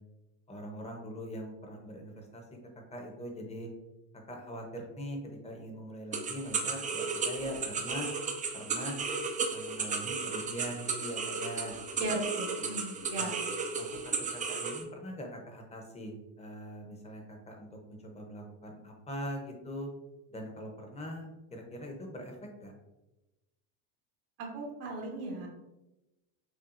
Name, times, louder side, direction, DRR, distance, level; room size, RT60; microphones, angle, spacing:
voice 1, 0.5-2.4 2.9-3.7 4.3-5.2 5.4-8.1 8.5-9.0 9.5-11.7 12.6-12.8 13.1-13.3 13.8-19.9 20.3-22.7, equal, 15° left, 2 dB, 0.8 m, -42 dB
sound 1, 6.1-14.8, right 4 dB, 20° right, 0.3 m, -34 dB
voice 2, 12.0-13.4 24.4-25.5, right 2 dB, 90° right, -1 dB, 1.3 m, -37 dB
5.8 x 2.3 x 2.5 m, 1.0 s
supercardioid pair, 110°, 45 cm